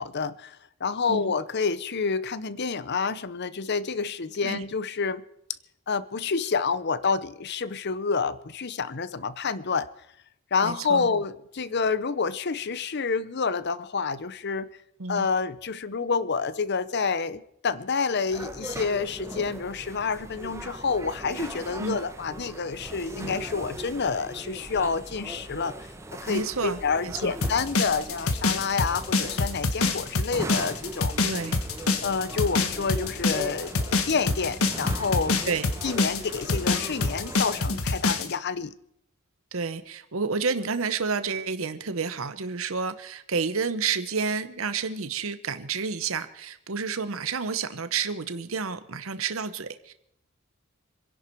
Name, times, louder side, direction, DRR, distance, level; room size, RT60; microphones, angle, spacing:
voice 1, 0.0-5.2 5.9-9.9 10.5-14.7 15.1-25.8 26.2-31.1 32.0-35.4 35.8-38.8, left 5 dB, 50° left, 0.7 m, -28 dB
voice 2, 10.6-11.1 15.0-15.3 21.8-22.0 26.3-26.8 27.0-27.3 31.2-31.6 35.4-35.7 39.5-49.9, right 5 dB, 75° right, 1.0 m, -30 dB
sound 1, 18.3-37.6, right 1 dB, 15° right, 1.0 m, -40 dB
sound 2, 27.4-38.3, left 3 dB, 90° left, 1.4 m, -26 dB
26.5 x 11.0 x 4.6 m
head